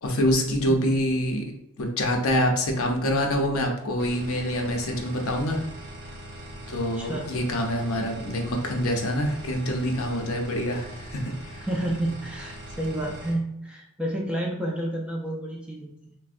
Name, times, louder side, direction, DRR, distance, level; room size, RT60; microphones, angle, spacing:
voice 1, 0.0-1.4 1.8-5.6 6.7-11.6, equal, 65° left, 2 dB, 0.5 m, -26 dB
sound 1, 4.0-13.3, right 1 dB, 45° right, 0.6 m, -41 dB
voice 2, 6.9-7.3 11.6-16.2, right 1 dB, 5° right, -2 dB, 0.3 m, -30 dB
3.3 x 2.0 x 2.5 m, 0.82 s
head